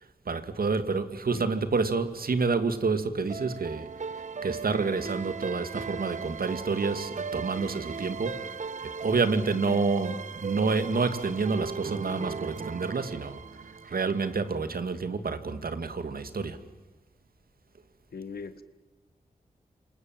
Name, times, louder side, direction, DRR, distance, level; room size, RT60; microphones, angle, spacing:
voice 1, 0.3-8.6 9.0-16.6, right 4 dB, 70° right, 2.2 m, -29 dB
sound 1, 3.3-14.5, right 5 dB, 50° right, 0.8 m, -38 dB
voice 2, 9.5-9.9 18.1-18.6, left 5 dB, 85° left, 1.8 m, -40 dB
28.5 x 25.5 x 7.7 m
cardioid pair, 50°, 16 cm